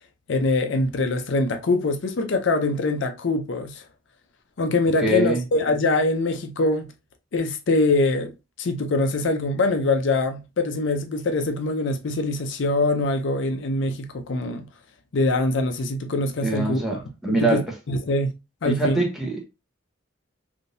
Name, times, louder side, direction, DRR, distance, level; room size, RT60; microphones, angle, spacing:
voice 1, 0.3-3.8 4.6-6.9 7.3-8.3 8.6-14.7 15.1-17.0 17.3-18.3 18.6-19.0, left 2 dB, 60° left, 0.5 m, -23 dB
voice 2, 5.0-5.4 16.4-17.6 18.7-19.4, right 2 dB, ahead, 0.8 m, -24 dB
3.5 x 2.6 x 2.6 m
head